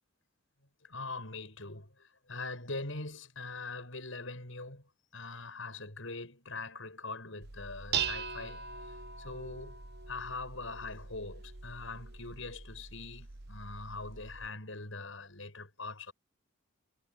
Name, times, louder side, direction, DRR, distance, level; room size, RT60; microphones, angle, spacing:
voice 1, 0.8-4.8 5.1-9.8 10.1-16.1, left 3 dB, 70° left, 6.5 m, -42 dB
Dishes pots and pans, 7.4-14.5, right 6 dB, 50° right, 1.1 m, -41 dB
head